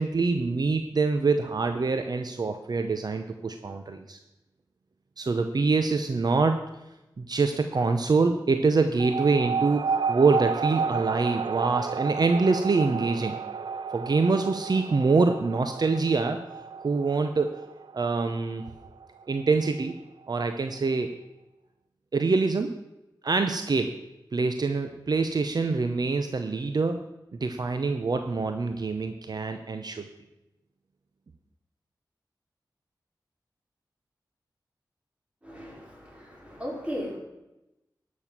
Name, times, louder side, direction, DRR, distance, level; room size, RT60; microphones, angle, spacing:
voice 1, 0.0-4.2 5.2-6.6 7.2-13.4 13.9-16.4 16.8-17.6 17.9-18.6 19.3-19.9 20.3-21.1 22.1-22.7 23.2-24.0 24.3-27.0 27.3-30.1, right 4 dB, 60° right, 7 dB, 0.8 m, -25 dB
sound 1, 9.0-19.9, right 5 dB, 85° right, 0.4 m, -32 dB
voice 2, 35.4-37.2, equal, 15° right, -2 dB, 4.4 m, -36 dB
12.0 x 6.4 x 7.5 m, 0.96 s
wide cardioid pair, 75°, 8 cm